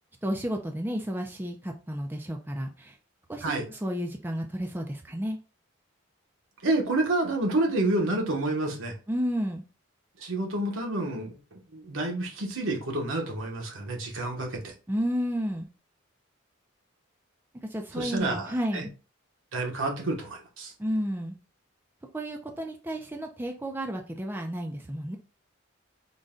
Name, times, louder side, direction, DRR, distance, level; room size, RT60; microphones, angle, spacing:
voice 1, 0.2-3.0 3.3-5.4 9.1-9.6 14.9-15.7 17.7-18.9 20.8-21.4 22.1-25.2, equal, 10° right, 0.3 m, -32 dB
voice 2, 6.6-8.9 10.2-14.7 18.0-18.8 19.5-20.7, right 2 dB, 80° right, 1.0 m, -29 dB
3.8 x 2.2 x 3.6 m
head